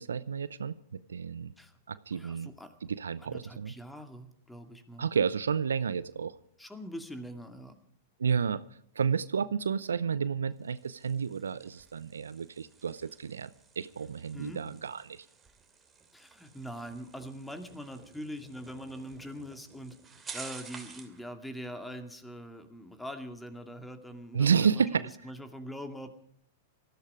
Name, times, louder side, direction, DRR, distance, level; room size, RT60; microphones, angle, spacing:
voice 1, 0.0-1.5 1.9-2.5 2.8-3.8 5.0-6.3 8.2-8.6 9.0-13.5 13.8-15.3 24.3-25.1, right 6 dB, 80° right, 17 dB, 0.6 m, -31 dB
voice 2, 2.1-2.7 3.2-5.1 6.6-7.8 14.3-14.6 16.1-20.0 20.3-26.1, equal, 5° left, 7 dB, 2.2 m, -43 dB
sound 1, 10.5-21.2, right 5 dB, 20° right, 2.7 m, -51 dB
19.5 x 14.5 x 4.9 m, 0.67 s
hypercardioid pair, 100°, 0 cm